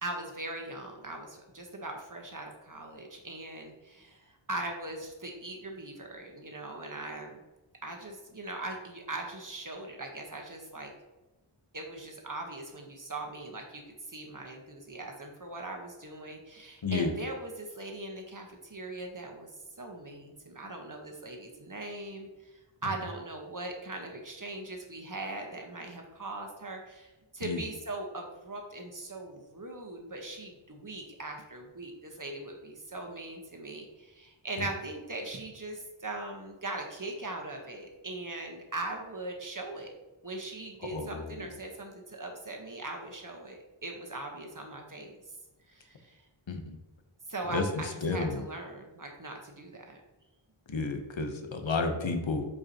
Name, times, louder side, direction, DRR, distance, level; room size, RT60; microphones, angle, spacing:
voice 1, 0.0-7.4 7.8-10.9 11.7-13.8 14.1-19.5 19.8-22.5 22.8-39.9 40.2-45.1 45.7-46.2 47.3-50.0, right 2 dB, 40° right, 2 dB, 1.2 m, -40 dB
voice 2, 16.8-17.2 27.4-27.6 40.8-41.5 46.5-46.8 47.5-48.4 50.7-52.5, left 3 dB, 65° left, 5 dB, 1.0 m, -32 dB
8.1 x 4.8 x 2.9 m, 1.1 s
wide cardioid pair, 60°, 50 cm